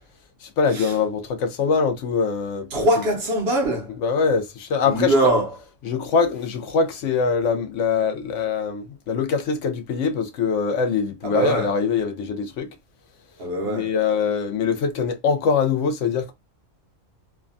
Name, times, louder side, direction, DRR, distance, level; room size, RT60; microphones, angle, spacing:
voice 1, 0.4-2.7 4.0-5.1 5.9-12.7 13.7-16.3, left 5 dB, 70° left, 0.9 m, -23 dB
voice 2, 2.7-3.9 4.8-5.5 11.2-11.7 13.4-13.9, right 1 dB, 60° right, 0.8 m, -22 dB
3.3 x 2.1 x 2.5 m
omnidirectional pair, 1.4 m